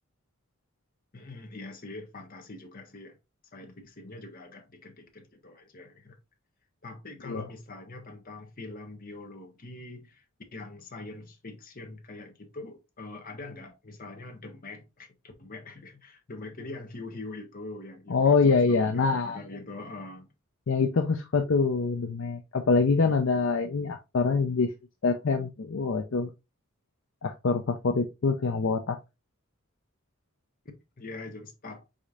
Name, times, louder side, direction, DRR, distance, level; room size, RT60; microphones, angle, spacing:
voice 1, 1.1-3.2 3.5-6.2 6.8-10.2 10.5-20.3 31.0-31.8, left 2 dB, 40° left, 1.0 m, -43 dB
voice 2, 18.1-19.4 20.7-24.7 25.0-26.3 27.2-29.0, left 4 dB, 65° left, 0.5 m, -25 dB
5.0 x 4.2 x 2.4 m
head